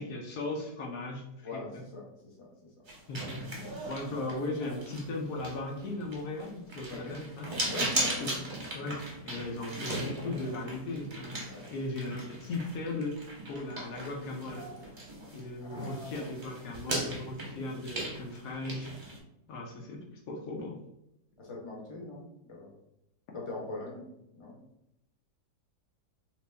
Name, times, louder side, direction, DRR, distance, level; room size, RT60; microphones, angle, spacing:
voice 1, 0.0-1.9 3.1-7.5 8.2-8.3 8.7-11.4 11.7-13.2 13.5-14.7 15.3-18.9 19.5-20.8, left 2 dB, 70° left, 0 dB, 1.1 m, -37 dB
voice 2, 1.4-2.5 6.9-7.2 7.7-8.3 11.4-11.7 15.6-16.2 21.4-22.7 23.3-24.1 24.3-24.6, left 2 dB, 30° left, -3 dB, 0.5 m, -41 dB
sound 1, 2.9-15.5 15.7-19.2, right 1 dB, 40° right, 0.8 m, -38 dB
3.0 x 2.9 x 3.3 m, 0.82 s
omnidirectional pair, 2.0 m